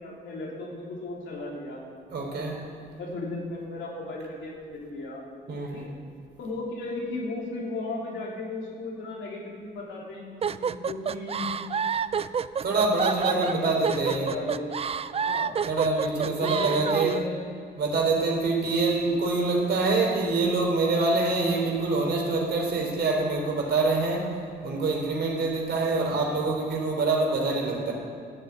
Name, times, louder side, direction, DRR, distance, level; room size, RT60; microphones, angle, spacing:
voice 1, 0.0-1.8 2.3-2.5 3.0-5.2 5.7-5.9 6.4-11.5 13.3-14.7 15.2-15.6 16.2-17.5 25.9-26.4, left 2 dB, 70° left, -3 dB, 3.5 m, -36 dB
voice 2, 2.1-2.6 5.5-5.9 12.6-14.4 15.7-17.2 17.8-27.9, right 3 dB, 55° right, 0 dB, 3.6 m, -25 dB
sound 1, 10.4-17.2, right 7 dB, 30° right, 0.4 m, -28 dB
13.0 x 8.2 x 8.3 m, 2.2 s
cardioid pair, 90°, 20 cm